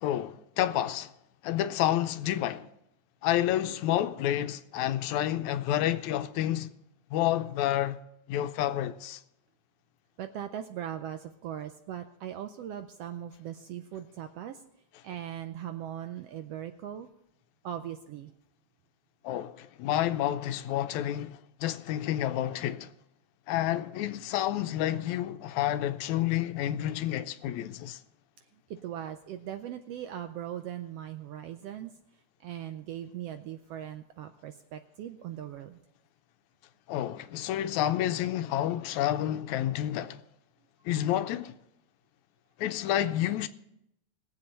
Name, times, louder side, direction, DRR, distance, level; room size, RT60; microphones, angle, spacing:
voice 1, 0.0-1.1 1.4-2.7 3.2-6.7 7.1-8.0 8.3-9.2 19.2-22.9 23.5-28.0 36.9-40.2 40.9-41.5 42.6-43.5, left 12 dB, 85° left, 2.0 m, -29 dB
voice 2, 10.2-14.6 15.0-17.1 17.6-18.3 28.5-31.9 32.4-35.8, right 10 dB, 80° right, 1.4 m, -39 dB
21.0 x 7.9 x 4.3 m
omnidirectional pair, 3.3 m